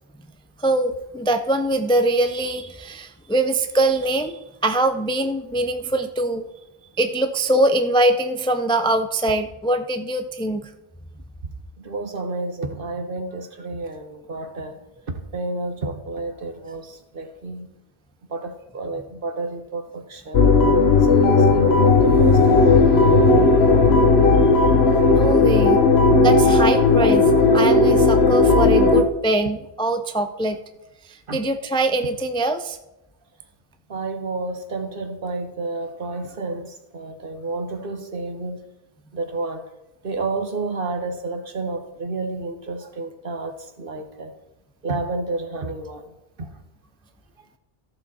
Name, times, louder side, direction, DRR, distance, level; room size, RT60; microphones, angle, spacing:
voice 1, 0.6-6.5 7.0-10.7 25.1-25.8 26.2-30.6 31.1-32.8, right 1 dB, 5° left, 8 dB, 0.4 m, -23 dB
voice 2, 11.8-17.7 18.3-20.5 21.1-24.0 31.3-31.4 33.9-38.6 39.1-39.7 40.0-44.4 44.8-46.0 46.4-46.5, right 3 dB, 60° right, 6 dB, 1.4 m, -30 dB
sound 1, 20.3-29.0, left 3 dB, 80° left, 1.3 m, -15 dB
14.0 x 7.0 x 4.2 m, 0.95 s
omnidirectional pair, 1.0 m